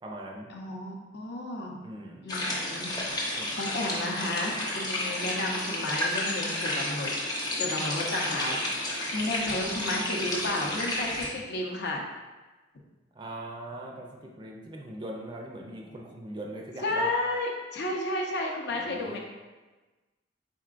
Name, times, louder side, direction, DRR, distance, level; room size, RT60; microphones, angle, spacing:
voice 1, 0.0-0.6 1.8-2.2 3.4-3.5 13.1-17.1 18.7-19.2, right 1 dB, 25° right, 0 dB, 0.4 m, -41 dB
voice 2, 0.5-1.8 2.2-7.1 7.6-12.0 16.8-19.2, left 1 dB, 60° left, 0 dB, 0.6 m, -32 dB
sound 1, 2.3-11.3, left 1 dB, 20° left, 0.6 m, -31 dB
4.3 x 3.7 x 2.5 m, 1.2 s
head